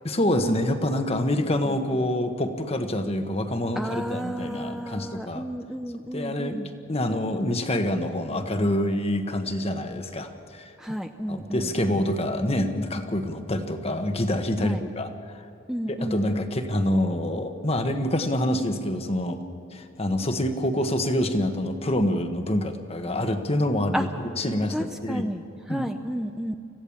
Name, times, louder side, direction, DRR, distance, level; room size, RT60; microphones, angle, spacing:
voice 1, 0.0-5.5 6.1-6.6 6.9-10.7 11.3-15.1 15.9-19.4 19.7-24.1 24.4-25.3 25.7-25.9, left 1 dB, 30° left, 7 dB, 1.3 m, -26 dB
voice 2, 3.8-6.7 10.8-11.7 14.6-14.8 15.7-16.5 23.9-24.1 24.7-26.6, equal, 5° right, 5 dB, 0.5 m, -32 dB
26.0 x 16.0 x 7.2 m, 2.7 s
head